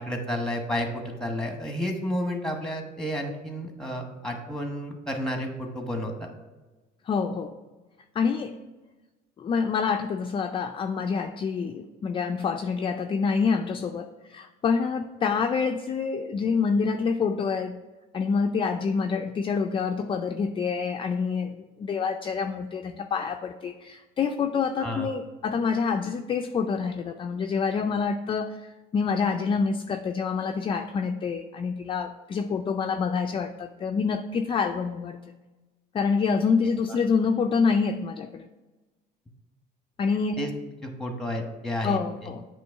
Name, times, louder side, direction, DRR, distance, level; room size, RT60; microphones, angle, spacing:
voice 1, 0.0-6.3 24.8-25.1 40.4-40.5 40.8-42.0, equal, 5° left, 3 dB, 1.1 m, -31 dB
voice 2, 7.1-7.5 8.2-8.6 9.4-17.8 18.1-35.2 35.9-38.5 40.0-40.4 41.8-42.5, left 5 dB, 30° left, 5 dB, 0.3 m, -27 dB
7.9 x 3.1 x 4.6 m, 1.2 s
cardioid pair, 110°, 17 cm